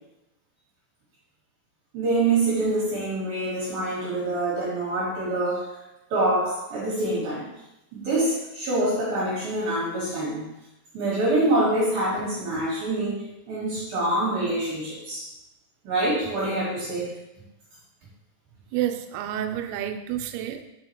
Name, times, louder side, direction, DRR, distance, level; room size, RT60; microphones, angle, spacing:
voice 1, 1.9-5.8 6.1-7.5 7.9-10.5 10.9-15.3 15.8-17.2, right 2 dB, 65° right, -7 dB, 2.4 m, -25 dB
voice 2, 18.7-20.6, right 11 dB, 85° right, 7 dB, 3.2 m, -29 dB
7.5 x 5.6 x 3.0 m, 0.92 s
omnidirectional pair, 6.0 m